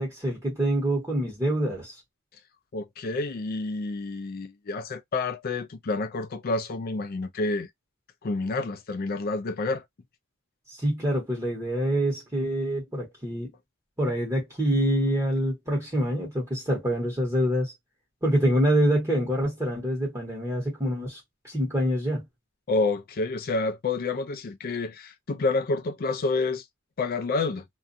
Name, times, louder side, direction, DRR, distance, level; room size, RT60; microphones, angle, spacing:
voice 1, 0.0-1.9 10.8-13.5 14.0-17.7 18.2-21.2 21.4-22.2, equal, 15° right, 1.1 m, -26 dB
voice 2, 2.7-7.7 8.2-9.8 22.7-26.6 27.0-27.6, left 3 dB, 40° left, 0.4 m, -29 dB
2.5 x 2.2 x 2.6 m
head